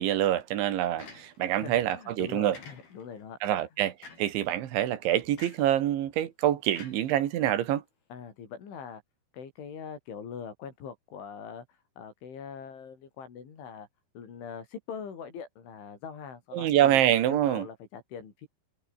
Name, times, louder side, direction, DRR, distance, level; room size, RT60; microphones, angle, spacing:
voice 1, 0.0-2.6 3.4-7.8 16.5-17.7, right 12 dB, 75° right, 4.2 m, -26 dB
sound 1, 1.0-1.6 2.5-3.2 4.0-4.4 5.4-5.8 6.7-7.6, left 4 dB, 50° left, 8.8 m, -49 dB
voice 2, 1.5-3.6 8.1-9.0 9.3-13.9 14.2-17.0 17.3-18.5, left 6 dB, 75° left, 7.4 m, -42 dB
omnidirectional pair, 5.5 m